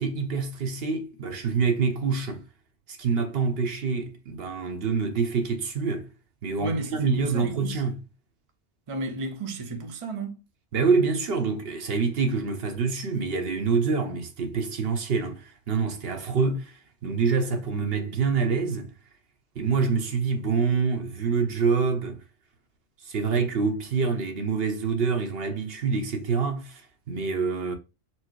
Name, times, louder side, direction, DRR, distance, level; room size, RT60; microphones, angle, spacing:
voice 1, 0.0-2.4 2.9-6.1 6.4-7.9 10.7-18.9 19.6-22.2 23.0-26.8 27.1-27.7, right 5 dB, 65° right, 0.9 m, -26 dB
voice 2, 6.6-7.8 8.9-10.4, right 2 dB, 35° right, 0.6 m, -33 dB
4.5 x 2.0 x 4.4 m
omnidirectional pair, 1.2 m